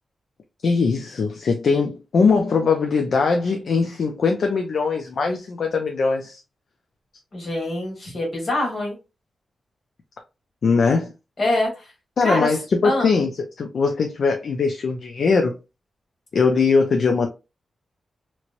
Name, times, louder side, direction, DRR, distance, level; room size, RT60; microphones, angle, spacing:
voice 1, 0.6-6.4 10.6-11.1 12.2-13.3 13.6-15.6 16.3-17.3, left 4 dB, 60° left, 0.4 m, -21 dB
voice 2, 7.3-9.0 11.4-11.8 12.2-12.6 12.8-13.1, left 1 dB, 45° left, 1.6 m, -24 dB
3.0 x 2.9 x 2.5 m
wide cardioid pair, 165°, 0 cm